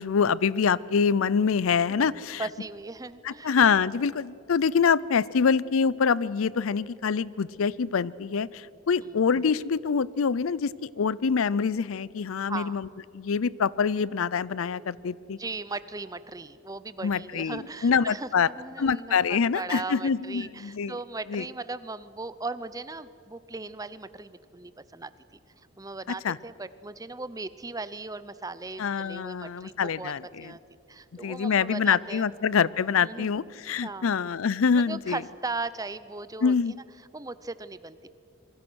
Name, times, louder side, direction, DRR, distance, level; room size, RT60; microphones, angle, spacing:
voice 1, 0.0-2.5 3.2-12.9 13.1-15.4 17.0-18.5 18.8-21.0 21.3-21.4 26.1-26.4 28.8-30.5 31.2-35.2 36.4-36.7, left 6 dB, 80° left, 21 dB, 0.5 m, -25 dB
voice 2, 2.4-3.6 9.0-9.2 12.5-12.8 15.4-25.1 25.8-30.1 30.4-30.6 30.9-32.3 33.0-33.3 33.8-34.1 34.9-36.5 37.1-38.1, right 3 dB, 15° right, 15 dB, 0.6 m, -37 dB
26.5 x 22.5 x 6.3 m, 2.7 s
head